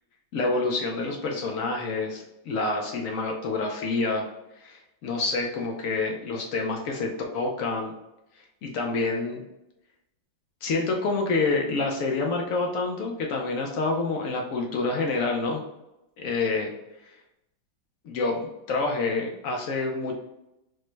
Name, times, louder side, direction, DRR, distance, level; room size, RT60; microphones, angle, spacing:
voice 1, 0.3-4.3 4.6-7.9 8.6-9.4 10.6-15.6 16.2-16.7 18.0-20.1, left 3 dB, 75° left, 1 dB, 0.7 m, -27 dB
5.0 x 2.2 x 3.1 m, 0.90 s
omnidirectional pair, 2.1 m